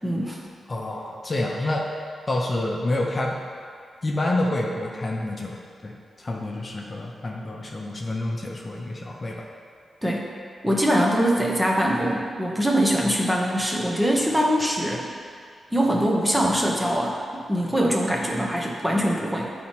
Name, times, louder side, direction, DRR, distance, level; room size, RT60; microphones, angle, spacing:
voice 1, 0.0-0.4 10.0-10.3 10.6-15.1 15.7-19.5, equal, 5° right, -2 dB, 0.8 m, -23 dB
voice 2, 0.7-1.9 2.3-3.4 4.0-5.6 5.8-9.5, left 1 dB, 35° left, -2 dB, 0.8 m, -28 dB
9.8 x 4.3 x 2.9 m, 2.1 s
wide cardioid pair, 110°, 0 cm